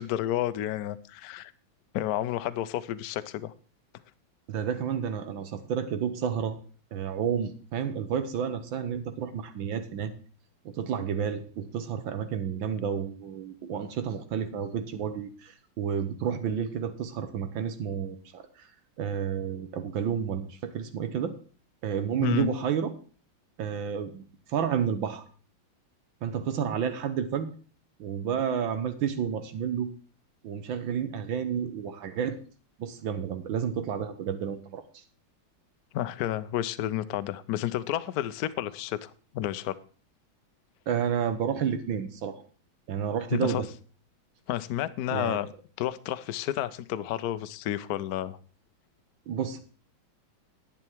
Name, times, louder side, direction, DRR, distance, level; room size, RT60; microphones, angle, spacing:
voice 1, 0.0-1.5 1.9-3.5 22.2-22.5 35.9-39.8 43.3-43.6 44.5-45.5 45.8-48.4, left 12 dB, 70° left, 0.9 m, -31 dB
voice 2, 4.5-6.6 6.9-10.1 10.6-18.7 19.0-21.3 21.8-23.0 23.6-25.2 26.2-27.5 28.0-29.9 30.4-32.4 32.8-35.0 40.9-42.4 42.9-43.7 45.1-45.4 49.3-49.6, right 8 dB, 75° right, 1.6 m, -30 dB
10.5 x 8.8 x 4.6 m
omnidirectional pair, 2.2 m